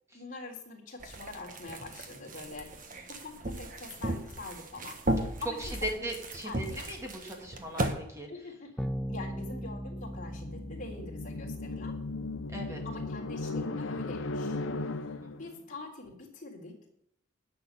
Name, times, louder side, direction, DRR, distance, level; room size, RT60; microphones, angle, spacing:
voice 1, 0.1-2.8 3.1-6.1 6.4-6.9 8.3-12.0 12.8-16.9, left 3 dB, 40° left, -2 dB, 3.4 m, -45 dB
sound 1, 1.0-7.9, right 1 dB, 40° right, 1.4 m, -36 dB
voice 2, 5.6-8.3 12.5-12.8 15.2-15.6, equal, 15° right, 1 dB, 2.3 m, -39 dB
sound 2, 8.8-13.6, equal, 5° left, 0.3 m, -40 dB
sound 3, 10.0-15.5, left 2 dB, 80° left, 0.8 m, -37 dB
10.5 x 6.8 x 8.5 m, 0.78 s
head